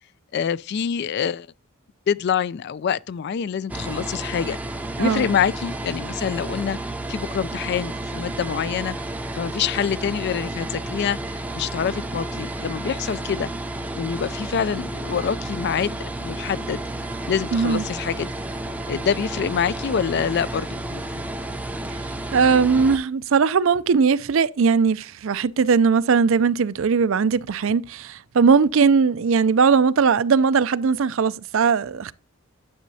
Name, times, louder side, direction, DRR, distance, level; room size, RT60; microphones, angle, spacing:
voice 1, 0.3-1.5 2.1-4.6 5.0-6.8 7.1-9.0 9.4-13.5 13.9-16.8 17.3-18.3 18.9-21.3, left 7 dB, 50° left, 0.3 m, -26 dB
sound 1, 3.7-23.0, right 1 dB, 5° right, 0.5 m, -31 dB
voice 2, 17.5-17.8 21.9-22.0 22.3-32.1, right 5 dB, 60° right, 0.4 m, -19 dB
10.5 x 6.4 x 2.7 m
head